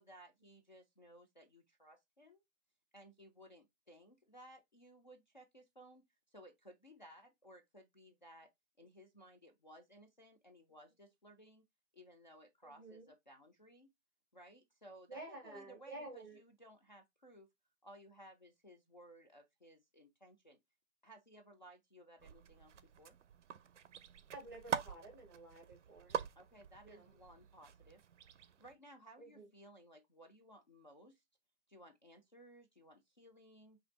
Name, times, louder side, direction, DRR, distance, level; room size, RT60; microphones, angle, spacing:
voice 1, 0.0-2.4 2.9-6.1 6.3-8.5 8.8-11.6 11.9-13.9 14.3-17.5 17.8-20.6 21.0-23.2 26.4-28.0 28.3-31.2 31.7-33.8, equal, 35° left, 0.4 m, -59 dB
voice 2, 12.6-13.1 15.1-16.4 24.3-26.2 26.8-27.1 29.2-29.5, right 2 dB, 15° right, 0.6 m, -51 dB
sound 1, 22.2-28.7, right 8 dB, 65° right, 0.5 m, -45 dB
2.9 x 2.5 x 4.1 m
hypercardioid pair, 165°, 40 cm